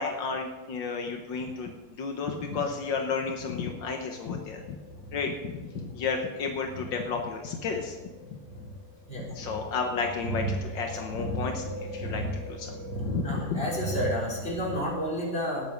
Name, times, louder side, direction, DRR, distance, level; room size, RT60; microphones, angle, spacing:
voice 1, 0.0-4.8 5.1-8.0 9.4-12.2 12.5-12.7 13.0-13.6, left 5 dB, 80° left, 3 dB, 1.9 m, -32 dB
sound 1, 4.4-14.8, right 1 dB, 60° left, 3.1 m, -36 dB
voice 2, 13.2-15.6, equal, 30° left, -4 dB, 4.1 m, -30 dB
19.0 x 8.2 x 5.3 m, 1.2 s
omnidirectional pair, 2.0 m